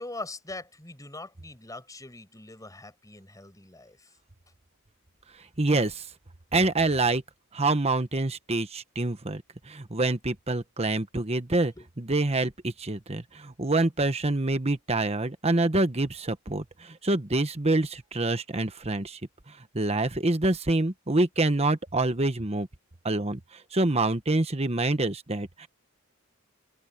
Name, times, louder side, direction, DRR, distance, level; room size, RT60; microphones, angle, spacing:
voice 1, 0.0-4.1 11.8-11.9, left 2 dB, 15° left, 5.5 m, -42 dB
voice 2, 5.6-6.0 6.5-7.2 7.5-9.4 9.7-19.2 19.7-22.7 23.0-23.4 23.7-25.7, right 2 dB, 30° right, 1.2 m, -26 dB
open air
head